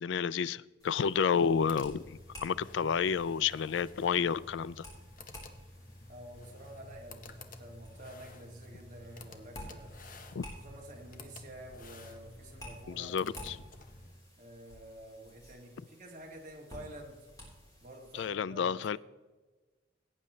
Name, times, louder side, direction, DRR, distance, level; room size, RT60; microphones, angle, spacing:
voice 1, 0.0-4.8 10.4-10.5 12.9-13.6 18.1-19.0, left 7 dB, 70° left, 0.3 m, -30 dB
sound 1, 0.8-18.3, equal, 20° left, 3.7 m, -53 dB
sound 2, 1.3-14.3, left 2 dB, 45° left, 0.9 m, -51 dB
voice 2, 6.1-9.9 10.6-13.1 14.4-17.3 17.8-19.0, right 1 dB, 40° right, 2.1 m, -49 dB
17.5 x 8.9 x 3.2 m
head